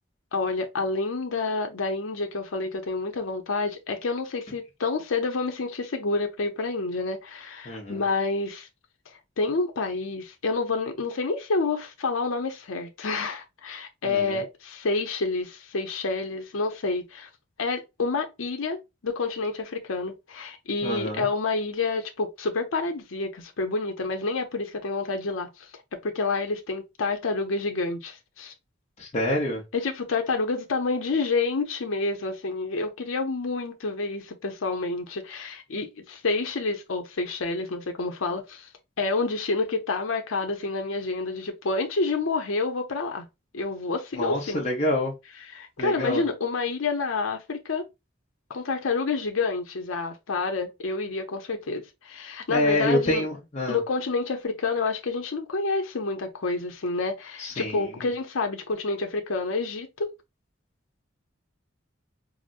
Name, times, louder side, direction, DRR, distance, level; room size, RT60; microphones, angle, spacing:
voice 1, 0.3-8.7 9.4-17.3 17.6-18.8 19.0-25.7 26.0-28.5 29.7-38.7 39.0-43.3 43.5-44.7 45.5-47.8 48.5-53.3 53.7-60.1, left 3 dB, 80° left, 0.7 m, -28 dB
voice 2, 7.6-8.0 14.0-14.4 20.8-21.3 29.0-29.6 44.1-45.1 45.8-46.2 52.5-53.8 57.4-57.8, left 1 dB, 35° left, 0.8 m, -27 dB
4.9 x 2.0 x 2.5 m
head